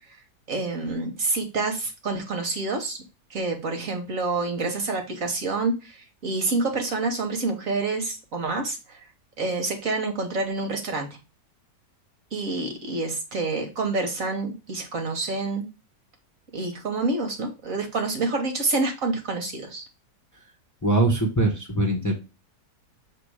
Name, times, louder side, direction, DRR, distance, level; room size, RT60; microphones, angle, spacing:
voice 1, 0.5-3.0 3.3-9.1 9.4-11.1 12.3-15.6 16.5-19.9, right 3 dB, 55° right, 4 dB, 1.4 m, -27 dB
voice 2, 20.8-22.1, right 2 dB, 10° left, -1 dB, 1.1 m, -22 dB
6.8 x 2.9 x 4.8 m, 0.28 s
omnidirectional pair, 1.8 m